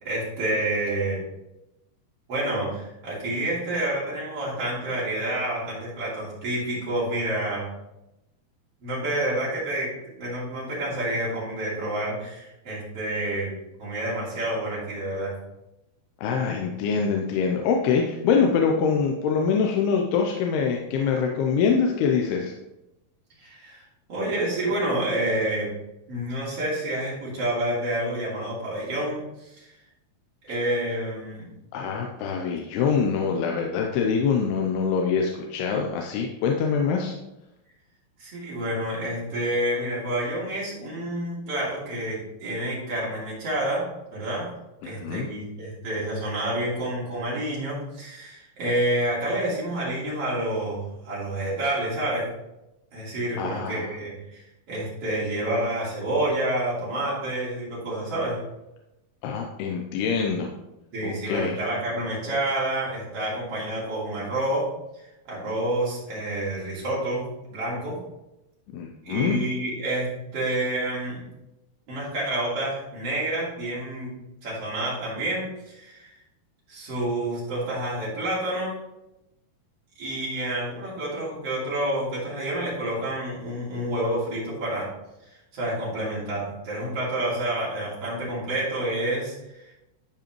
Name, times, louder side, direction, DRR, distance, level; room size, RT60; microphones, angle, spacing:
voice 1, 0.0-1.2 2.3-7.7 8.8-9.9 10.2-13.5 13.8-15.4 23.4-23.8 24.1-25.7 26.1-29.7 30.4-31.5 38.2-43.9 44.1-44.5 44.8-52.3 52.9-54.4 54.7-58.4 60.9-64.7 65.3-67.9 69.0-71.2 71.9-74.1 74.4-76.1 76.7-78.7 80.0-84.9 85.5-89.3 89.6-89.7, right 1 dB, 40° right, -7 dB, 3.7 m, -28 dB
voice 2, 16.2-22.5 31.7-37.1 44.8-45.3 53.4-53.9 59.2-60.5 61.0-61.5 68.7-69.4, left 6 dB, 90° left, 1 dB, 2.7 m, -24 dB
12.0 x 5.0 x 3.1 m, 0.92 s
omnidirectional pair, 4.5 m